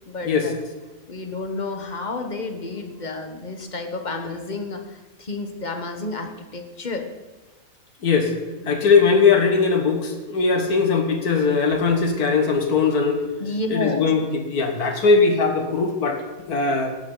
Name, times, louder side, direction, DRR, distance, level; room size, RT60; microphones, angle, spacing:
voice 1, 0.1-0.5 1.1-7.1 8.6-8.8 13.4-14.1, left 3 dB, 30° left, 5 dB, 1.3 m, -31 dB
voice 2, 8.0-8.3 8.7-13.2 13.7-17.0, left 4 dB, 80° left, 4 dB, 2.0 m, -20 dB
17.5 x 10.5 x 4.0 m, 1.2 s
omnidirectional pair, 1.6 m